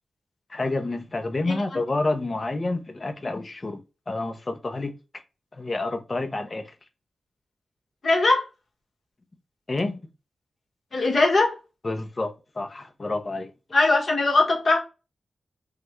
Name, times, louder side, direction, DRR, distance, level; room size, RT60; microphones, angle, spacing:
voice 1, 0.5-3.8 4.1-4.9 5.5-6.7 9.7-10.0 11.8-13.5, left 2 dB, 30° left, 0.6 m, -29 dB
voice 2, 8.0-8.4 10.9-11.6 13.7-14.8, left 2 dB, 50° left, 1.2 m, -20 dB
5.7 x 2.2 x 3.0 m
wide cardioid pair, 165°, 0 cm